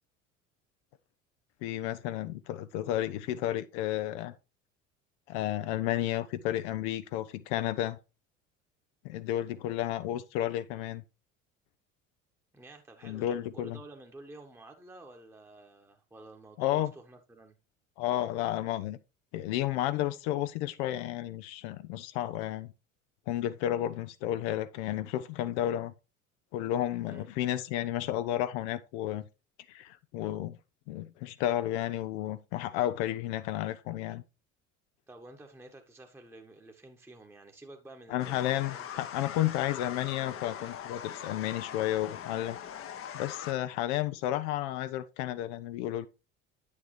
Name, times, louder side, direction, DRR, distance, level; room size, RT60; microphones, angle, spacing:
voice 1, 1.6-4.3 5.3-8.0 9.0-11.0 13.0-13.8 16.6-16.9 18.0-19.0 19.3-22.7 23.3-25.9 26.5-29.2 29.7-30.6 30.9-34.2 38.1-42.6 43.1-46.1, left 13 dB, 60° left, 0.6 m, -32 dB
voice 2, 12.5-17.5 27.0-27.3 35.1-38.4 38.7-38.8, right 2 dB, 5° right, 1.2 m, -51 dB
sound 1, 38.2-43.5, left 9 dB, 35° left, 0.9 m, -41 dB
9.2 x 6.7 x 3.2 m
figure-of-eight pair, 65°, 39 cm